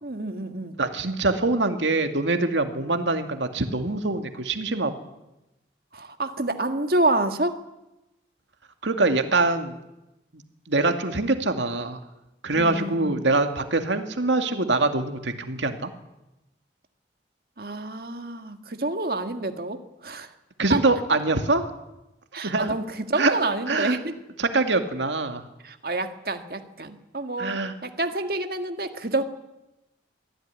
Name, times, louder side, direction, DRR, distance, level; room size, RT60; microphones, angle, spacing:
voice 1, 0.0-0.8 5.9-7.6 12.5-13.2 17.6-20.3 20.7-20.8 22.3-24.1 25.6-29.2, right 2 dB, 55° right, 7 dB, 1.9 m, -28 dB
voice 2, 0.8-4.9 8.8-9.8 10.3-10.4 10.7-12.0 12.4-15.9 20.6-21.6 22.4-22.7 23.2-23.3 23.7-24.0 24.4-25.4 27.4-27.7, right 3 dB, 90° right, 6 dB, 2.3 m, -24 dB
24.5 x 15.5 x 9.7 m, 0.96 s
head